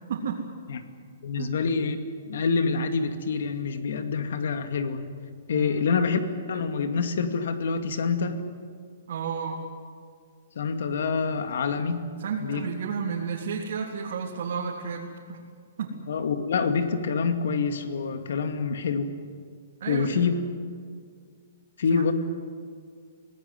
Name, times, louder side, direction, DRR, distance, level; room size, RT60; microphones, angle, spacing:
voice 1, 0.1-0.5 1.3-1.5 5.5-5.9 9.1-9.7 12.2-15.4 15.8-16.0 19.8-20.1 21.9-22.1, right 6 dB, 60° right, -3 dB, 3.4 m, -32 dB
voice 2, 1.2-2.0 2.3-5.1 5.5-6.2 6.5-8.4 10.6-12.0 12.4-12.7 16.1-19.1 19.9-20.4 21.8-22.1, left 5 dB, 65° left, 8 dB, 2.3 m, -26 dB
25.0 x 18.5 x 9.7 m, 2.1 s
hypercardioid pair, 170°, 0 cm